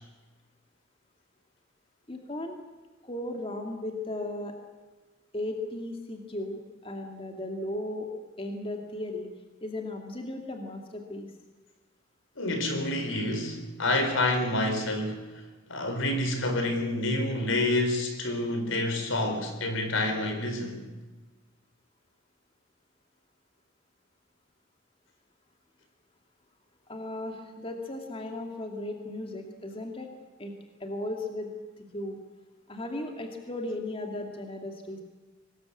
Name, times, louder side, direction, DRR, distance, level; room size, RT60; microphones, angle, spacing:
voice 1, 2.1-2.6 3.0-4.6 5.3-8.1 8.4-9.3 9.6-11.3 26.9-30.1 30.4-32.2 32.7-35.0, left 1 dB, 25° left, 3 dB, 2.4 m, -36 dB
voice 2, 12.4-15.3 15.7-20.8, left 1 dB, 70° left, 6 dB, 4.2 m, -28 dB
24.0 x 20.0 x 8.5 m, 1.2 s
head